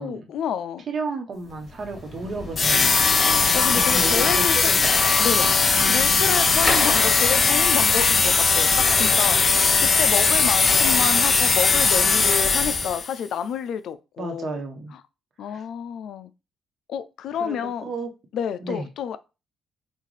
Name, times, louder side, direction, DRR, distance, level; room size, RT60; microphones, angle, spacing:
voice 1, 0.0-0.8 3.0-4.7 5.2-5.5 5.9-14.6 14.9-15.0 15.4-16.3 16.9-17.9 18.3-19.2, left 8 dB, 75° left, 0.4 m, -29 dB
voice 2, 0.9-2.9 3.7-4.9 5.4-5.6 14.2-14.9 15.4-15.6 17.4-18.1 18.6-18.9, right 3 dB, 50° right, 1.1 m, -33 dB
sound 1, 1.5-13.0, left 2 dB, 20° left, 2.5 m, -32 dB
sound 2, 2.6-13.1, left 4 dB, 40° left, 0.7 m, -19 dB
6.3 x 2.5 x 3.2 m
cardioid pair, 90°, 0 cm